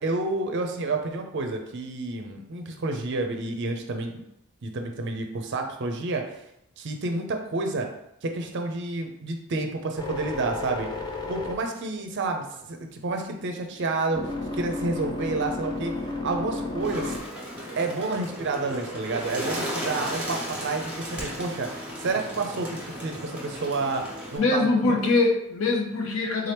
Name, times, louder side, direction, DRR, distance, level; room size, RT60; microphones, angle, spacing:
voice 1, 0.0-4.2 4.6-6.4 6.8-7.9 8.2-10.9 11.3-14.2 14.5-17.2 17.8-24.0 24.3-24.8, right 3 dB, 50° right, 4 dB, 0.5 m, -29 dB
sound 1, 10.0-12.6 13.1-17.2, left 3 dB, 20° left, 0.4 m, -33 dB
Bird, 16.8-24.4, equal, 5° right, 0.9 m, -35 dB
voice 2, 24.4-26.5, left 3 dB, 65° left, 2 dB, 0.6 m, -23 dB
3.7 x 2.8 x 3.3 m, 0.79 s
head